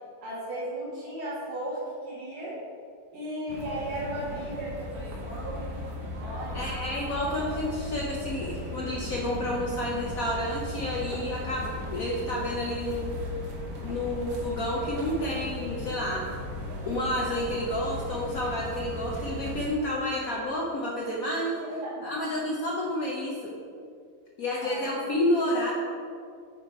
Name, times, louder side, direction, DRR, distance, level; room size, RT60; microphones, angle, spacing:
voice 1, 0.2-1.8 2.0-2.5 3.1-4.9 5.2-5.7 6.2-6.6 21.6-22.2 24.5-24.9, right 1 dB, 85° right, -9 dB, 2.1 m, -35 dB
sound 1, 3.5-19.7, left 1 dB, 55° right, 1.1 m, -37 dB
voice 2, 6.5-13.1 13.8-16.3 16.9-21.6 22.0-23.5 24.4-25.7, left 1 dB, 70° left, -3 dB, 0.8 m, -30 dB
8.8 x 3.2 x 4.4 m, 2.2 s
omnidirectional pair, 2.3 m